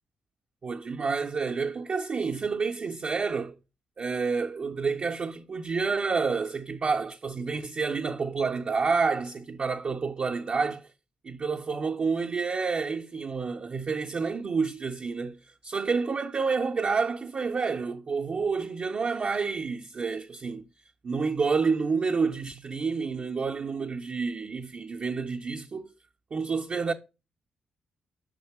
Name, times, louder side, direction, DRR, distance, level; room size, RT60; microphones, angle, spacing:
voice 1, 0.6-3.5 4.0-10.9 11.2-15.4 15.6-20.7 21.0-25.9 26.3-26.9, right 4 dB, 50° right, 0.5 m, -29 dB
5.7 x 3.7 x 4.5 m
cardioid pair, 65°, 3 cm